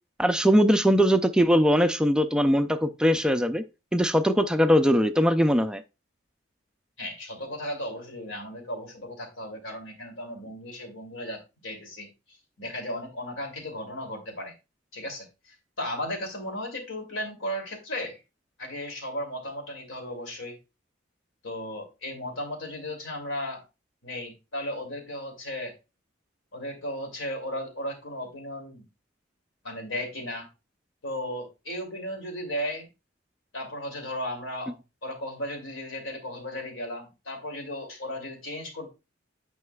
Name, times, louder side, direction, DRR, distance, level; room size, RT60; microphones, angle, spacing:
voice 1, 0.2-3.6 3.9-5.8, equal, 5° right, 0.3 m, -21 dB
voice 2, 7.0-12.1 12.6-14.5 14.9-18.2 18.6-20.6 21.4-23.6 24.0-25.7 26.5-28.8 29.6-30.5 31.0-32.9 33.5-34.8 35.0-38.9, left 1 dB, 85° left, 2.7 m, -35 dB
9.5 x 5.6 x 2.3 m
head